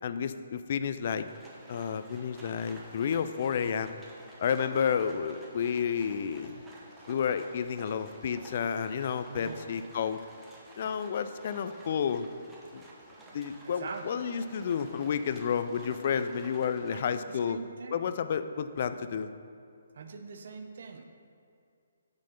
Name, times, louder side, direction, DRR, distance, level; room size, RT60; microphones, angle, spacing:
voice 1, 0.0-1.3 1.7-4.0 4.4-6.6 7.1-10.2 10.8-12.3 12.7-12.8 13.3-17.6 17.9-19.3, left 7 dB, 50° left, 11 dB, 0.3 m, -31 dB
Livestock farm animals working animals, 1.0-17.4, right 1 dB, 10° right, 0.9 m, -52 dB
voice 2, 9.3-9.7 13.6-14.4 16.9-18.0 20.0-21.0, right 4 dB, 60° right, 6 dB, 0.6 m, -43 dB
6.3 x 4.2 x 5.6 m, 2.4 s
figure-of-eight pair, 140°, 0 cm